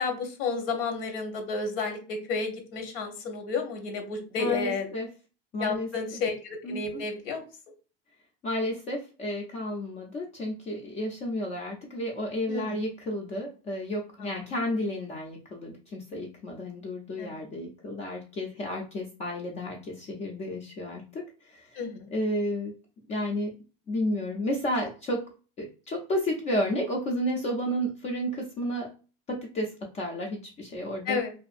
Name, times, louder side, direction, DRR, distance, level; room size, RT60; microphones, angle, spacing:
voice 1, 0.0-4.9 5.6-7.4 12.5-12.7 17.2-17.3 21.8-22.1 31.1-31.3, left 4 dB, 80° left, 4 dB, 0.8 m, -31 dB
voice 2, 4.4-5.1 5.5-5.9 6.6-7.0 8.4-21.8 22.1-22.7 23.1-23.5 23.9-25.2 25.6-28.9 29.3-31.2, equal, 25° left, 0 dB, 0.3 m, -32 dB
2.5 x 2.5 x 2.4 m, 0.36 s
supercardioid pair, 140°, 29 cm